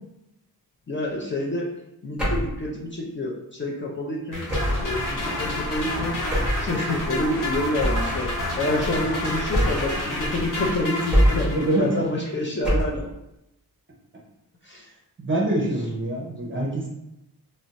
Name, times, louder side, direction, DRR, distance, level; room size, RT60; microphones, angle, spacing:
voice 1, 0.9-1.7 2.0-4.4 4.8-6.1 6.6-13.0 14.6-14.9, left 1 dB, 30° left, -2 dB, 0.4 m, -28 dB
sound 1, 2.2-2.6 4.5-4.9 6.3-6.7 7.8-8.2 9.5-10.0 11.1-11.6 12.6-13.1, equal, 5° right, 0.9 m, -22 dB
sound 2, 4.3-12.1, left 1 dB, 55° left, 0.9 m, -30 dB
sound 3, 4.5-10.9, left 1 dB, 85° left, 0.7 m, -34 dB
voice 2, 11.4-12.1 15.2-16.9, right 1 dB, 30° right, -2 dB, 0.6 m, -25 dB
2.4 x 2.1 x 3.9 m, 0.87 s
wide cardioid pair, 130°, 38 cm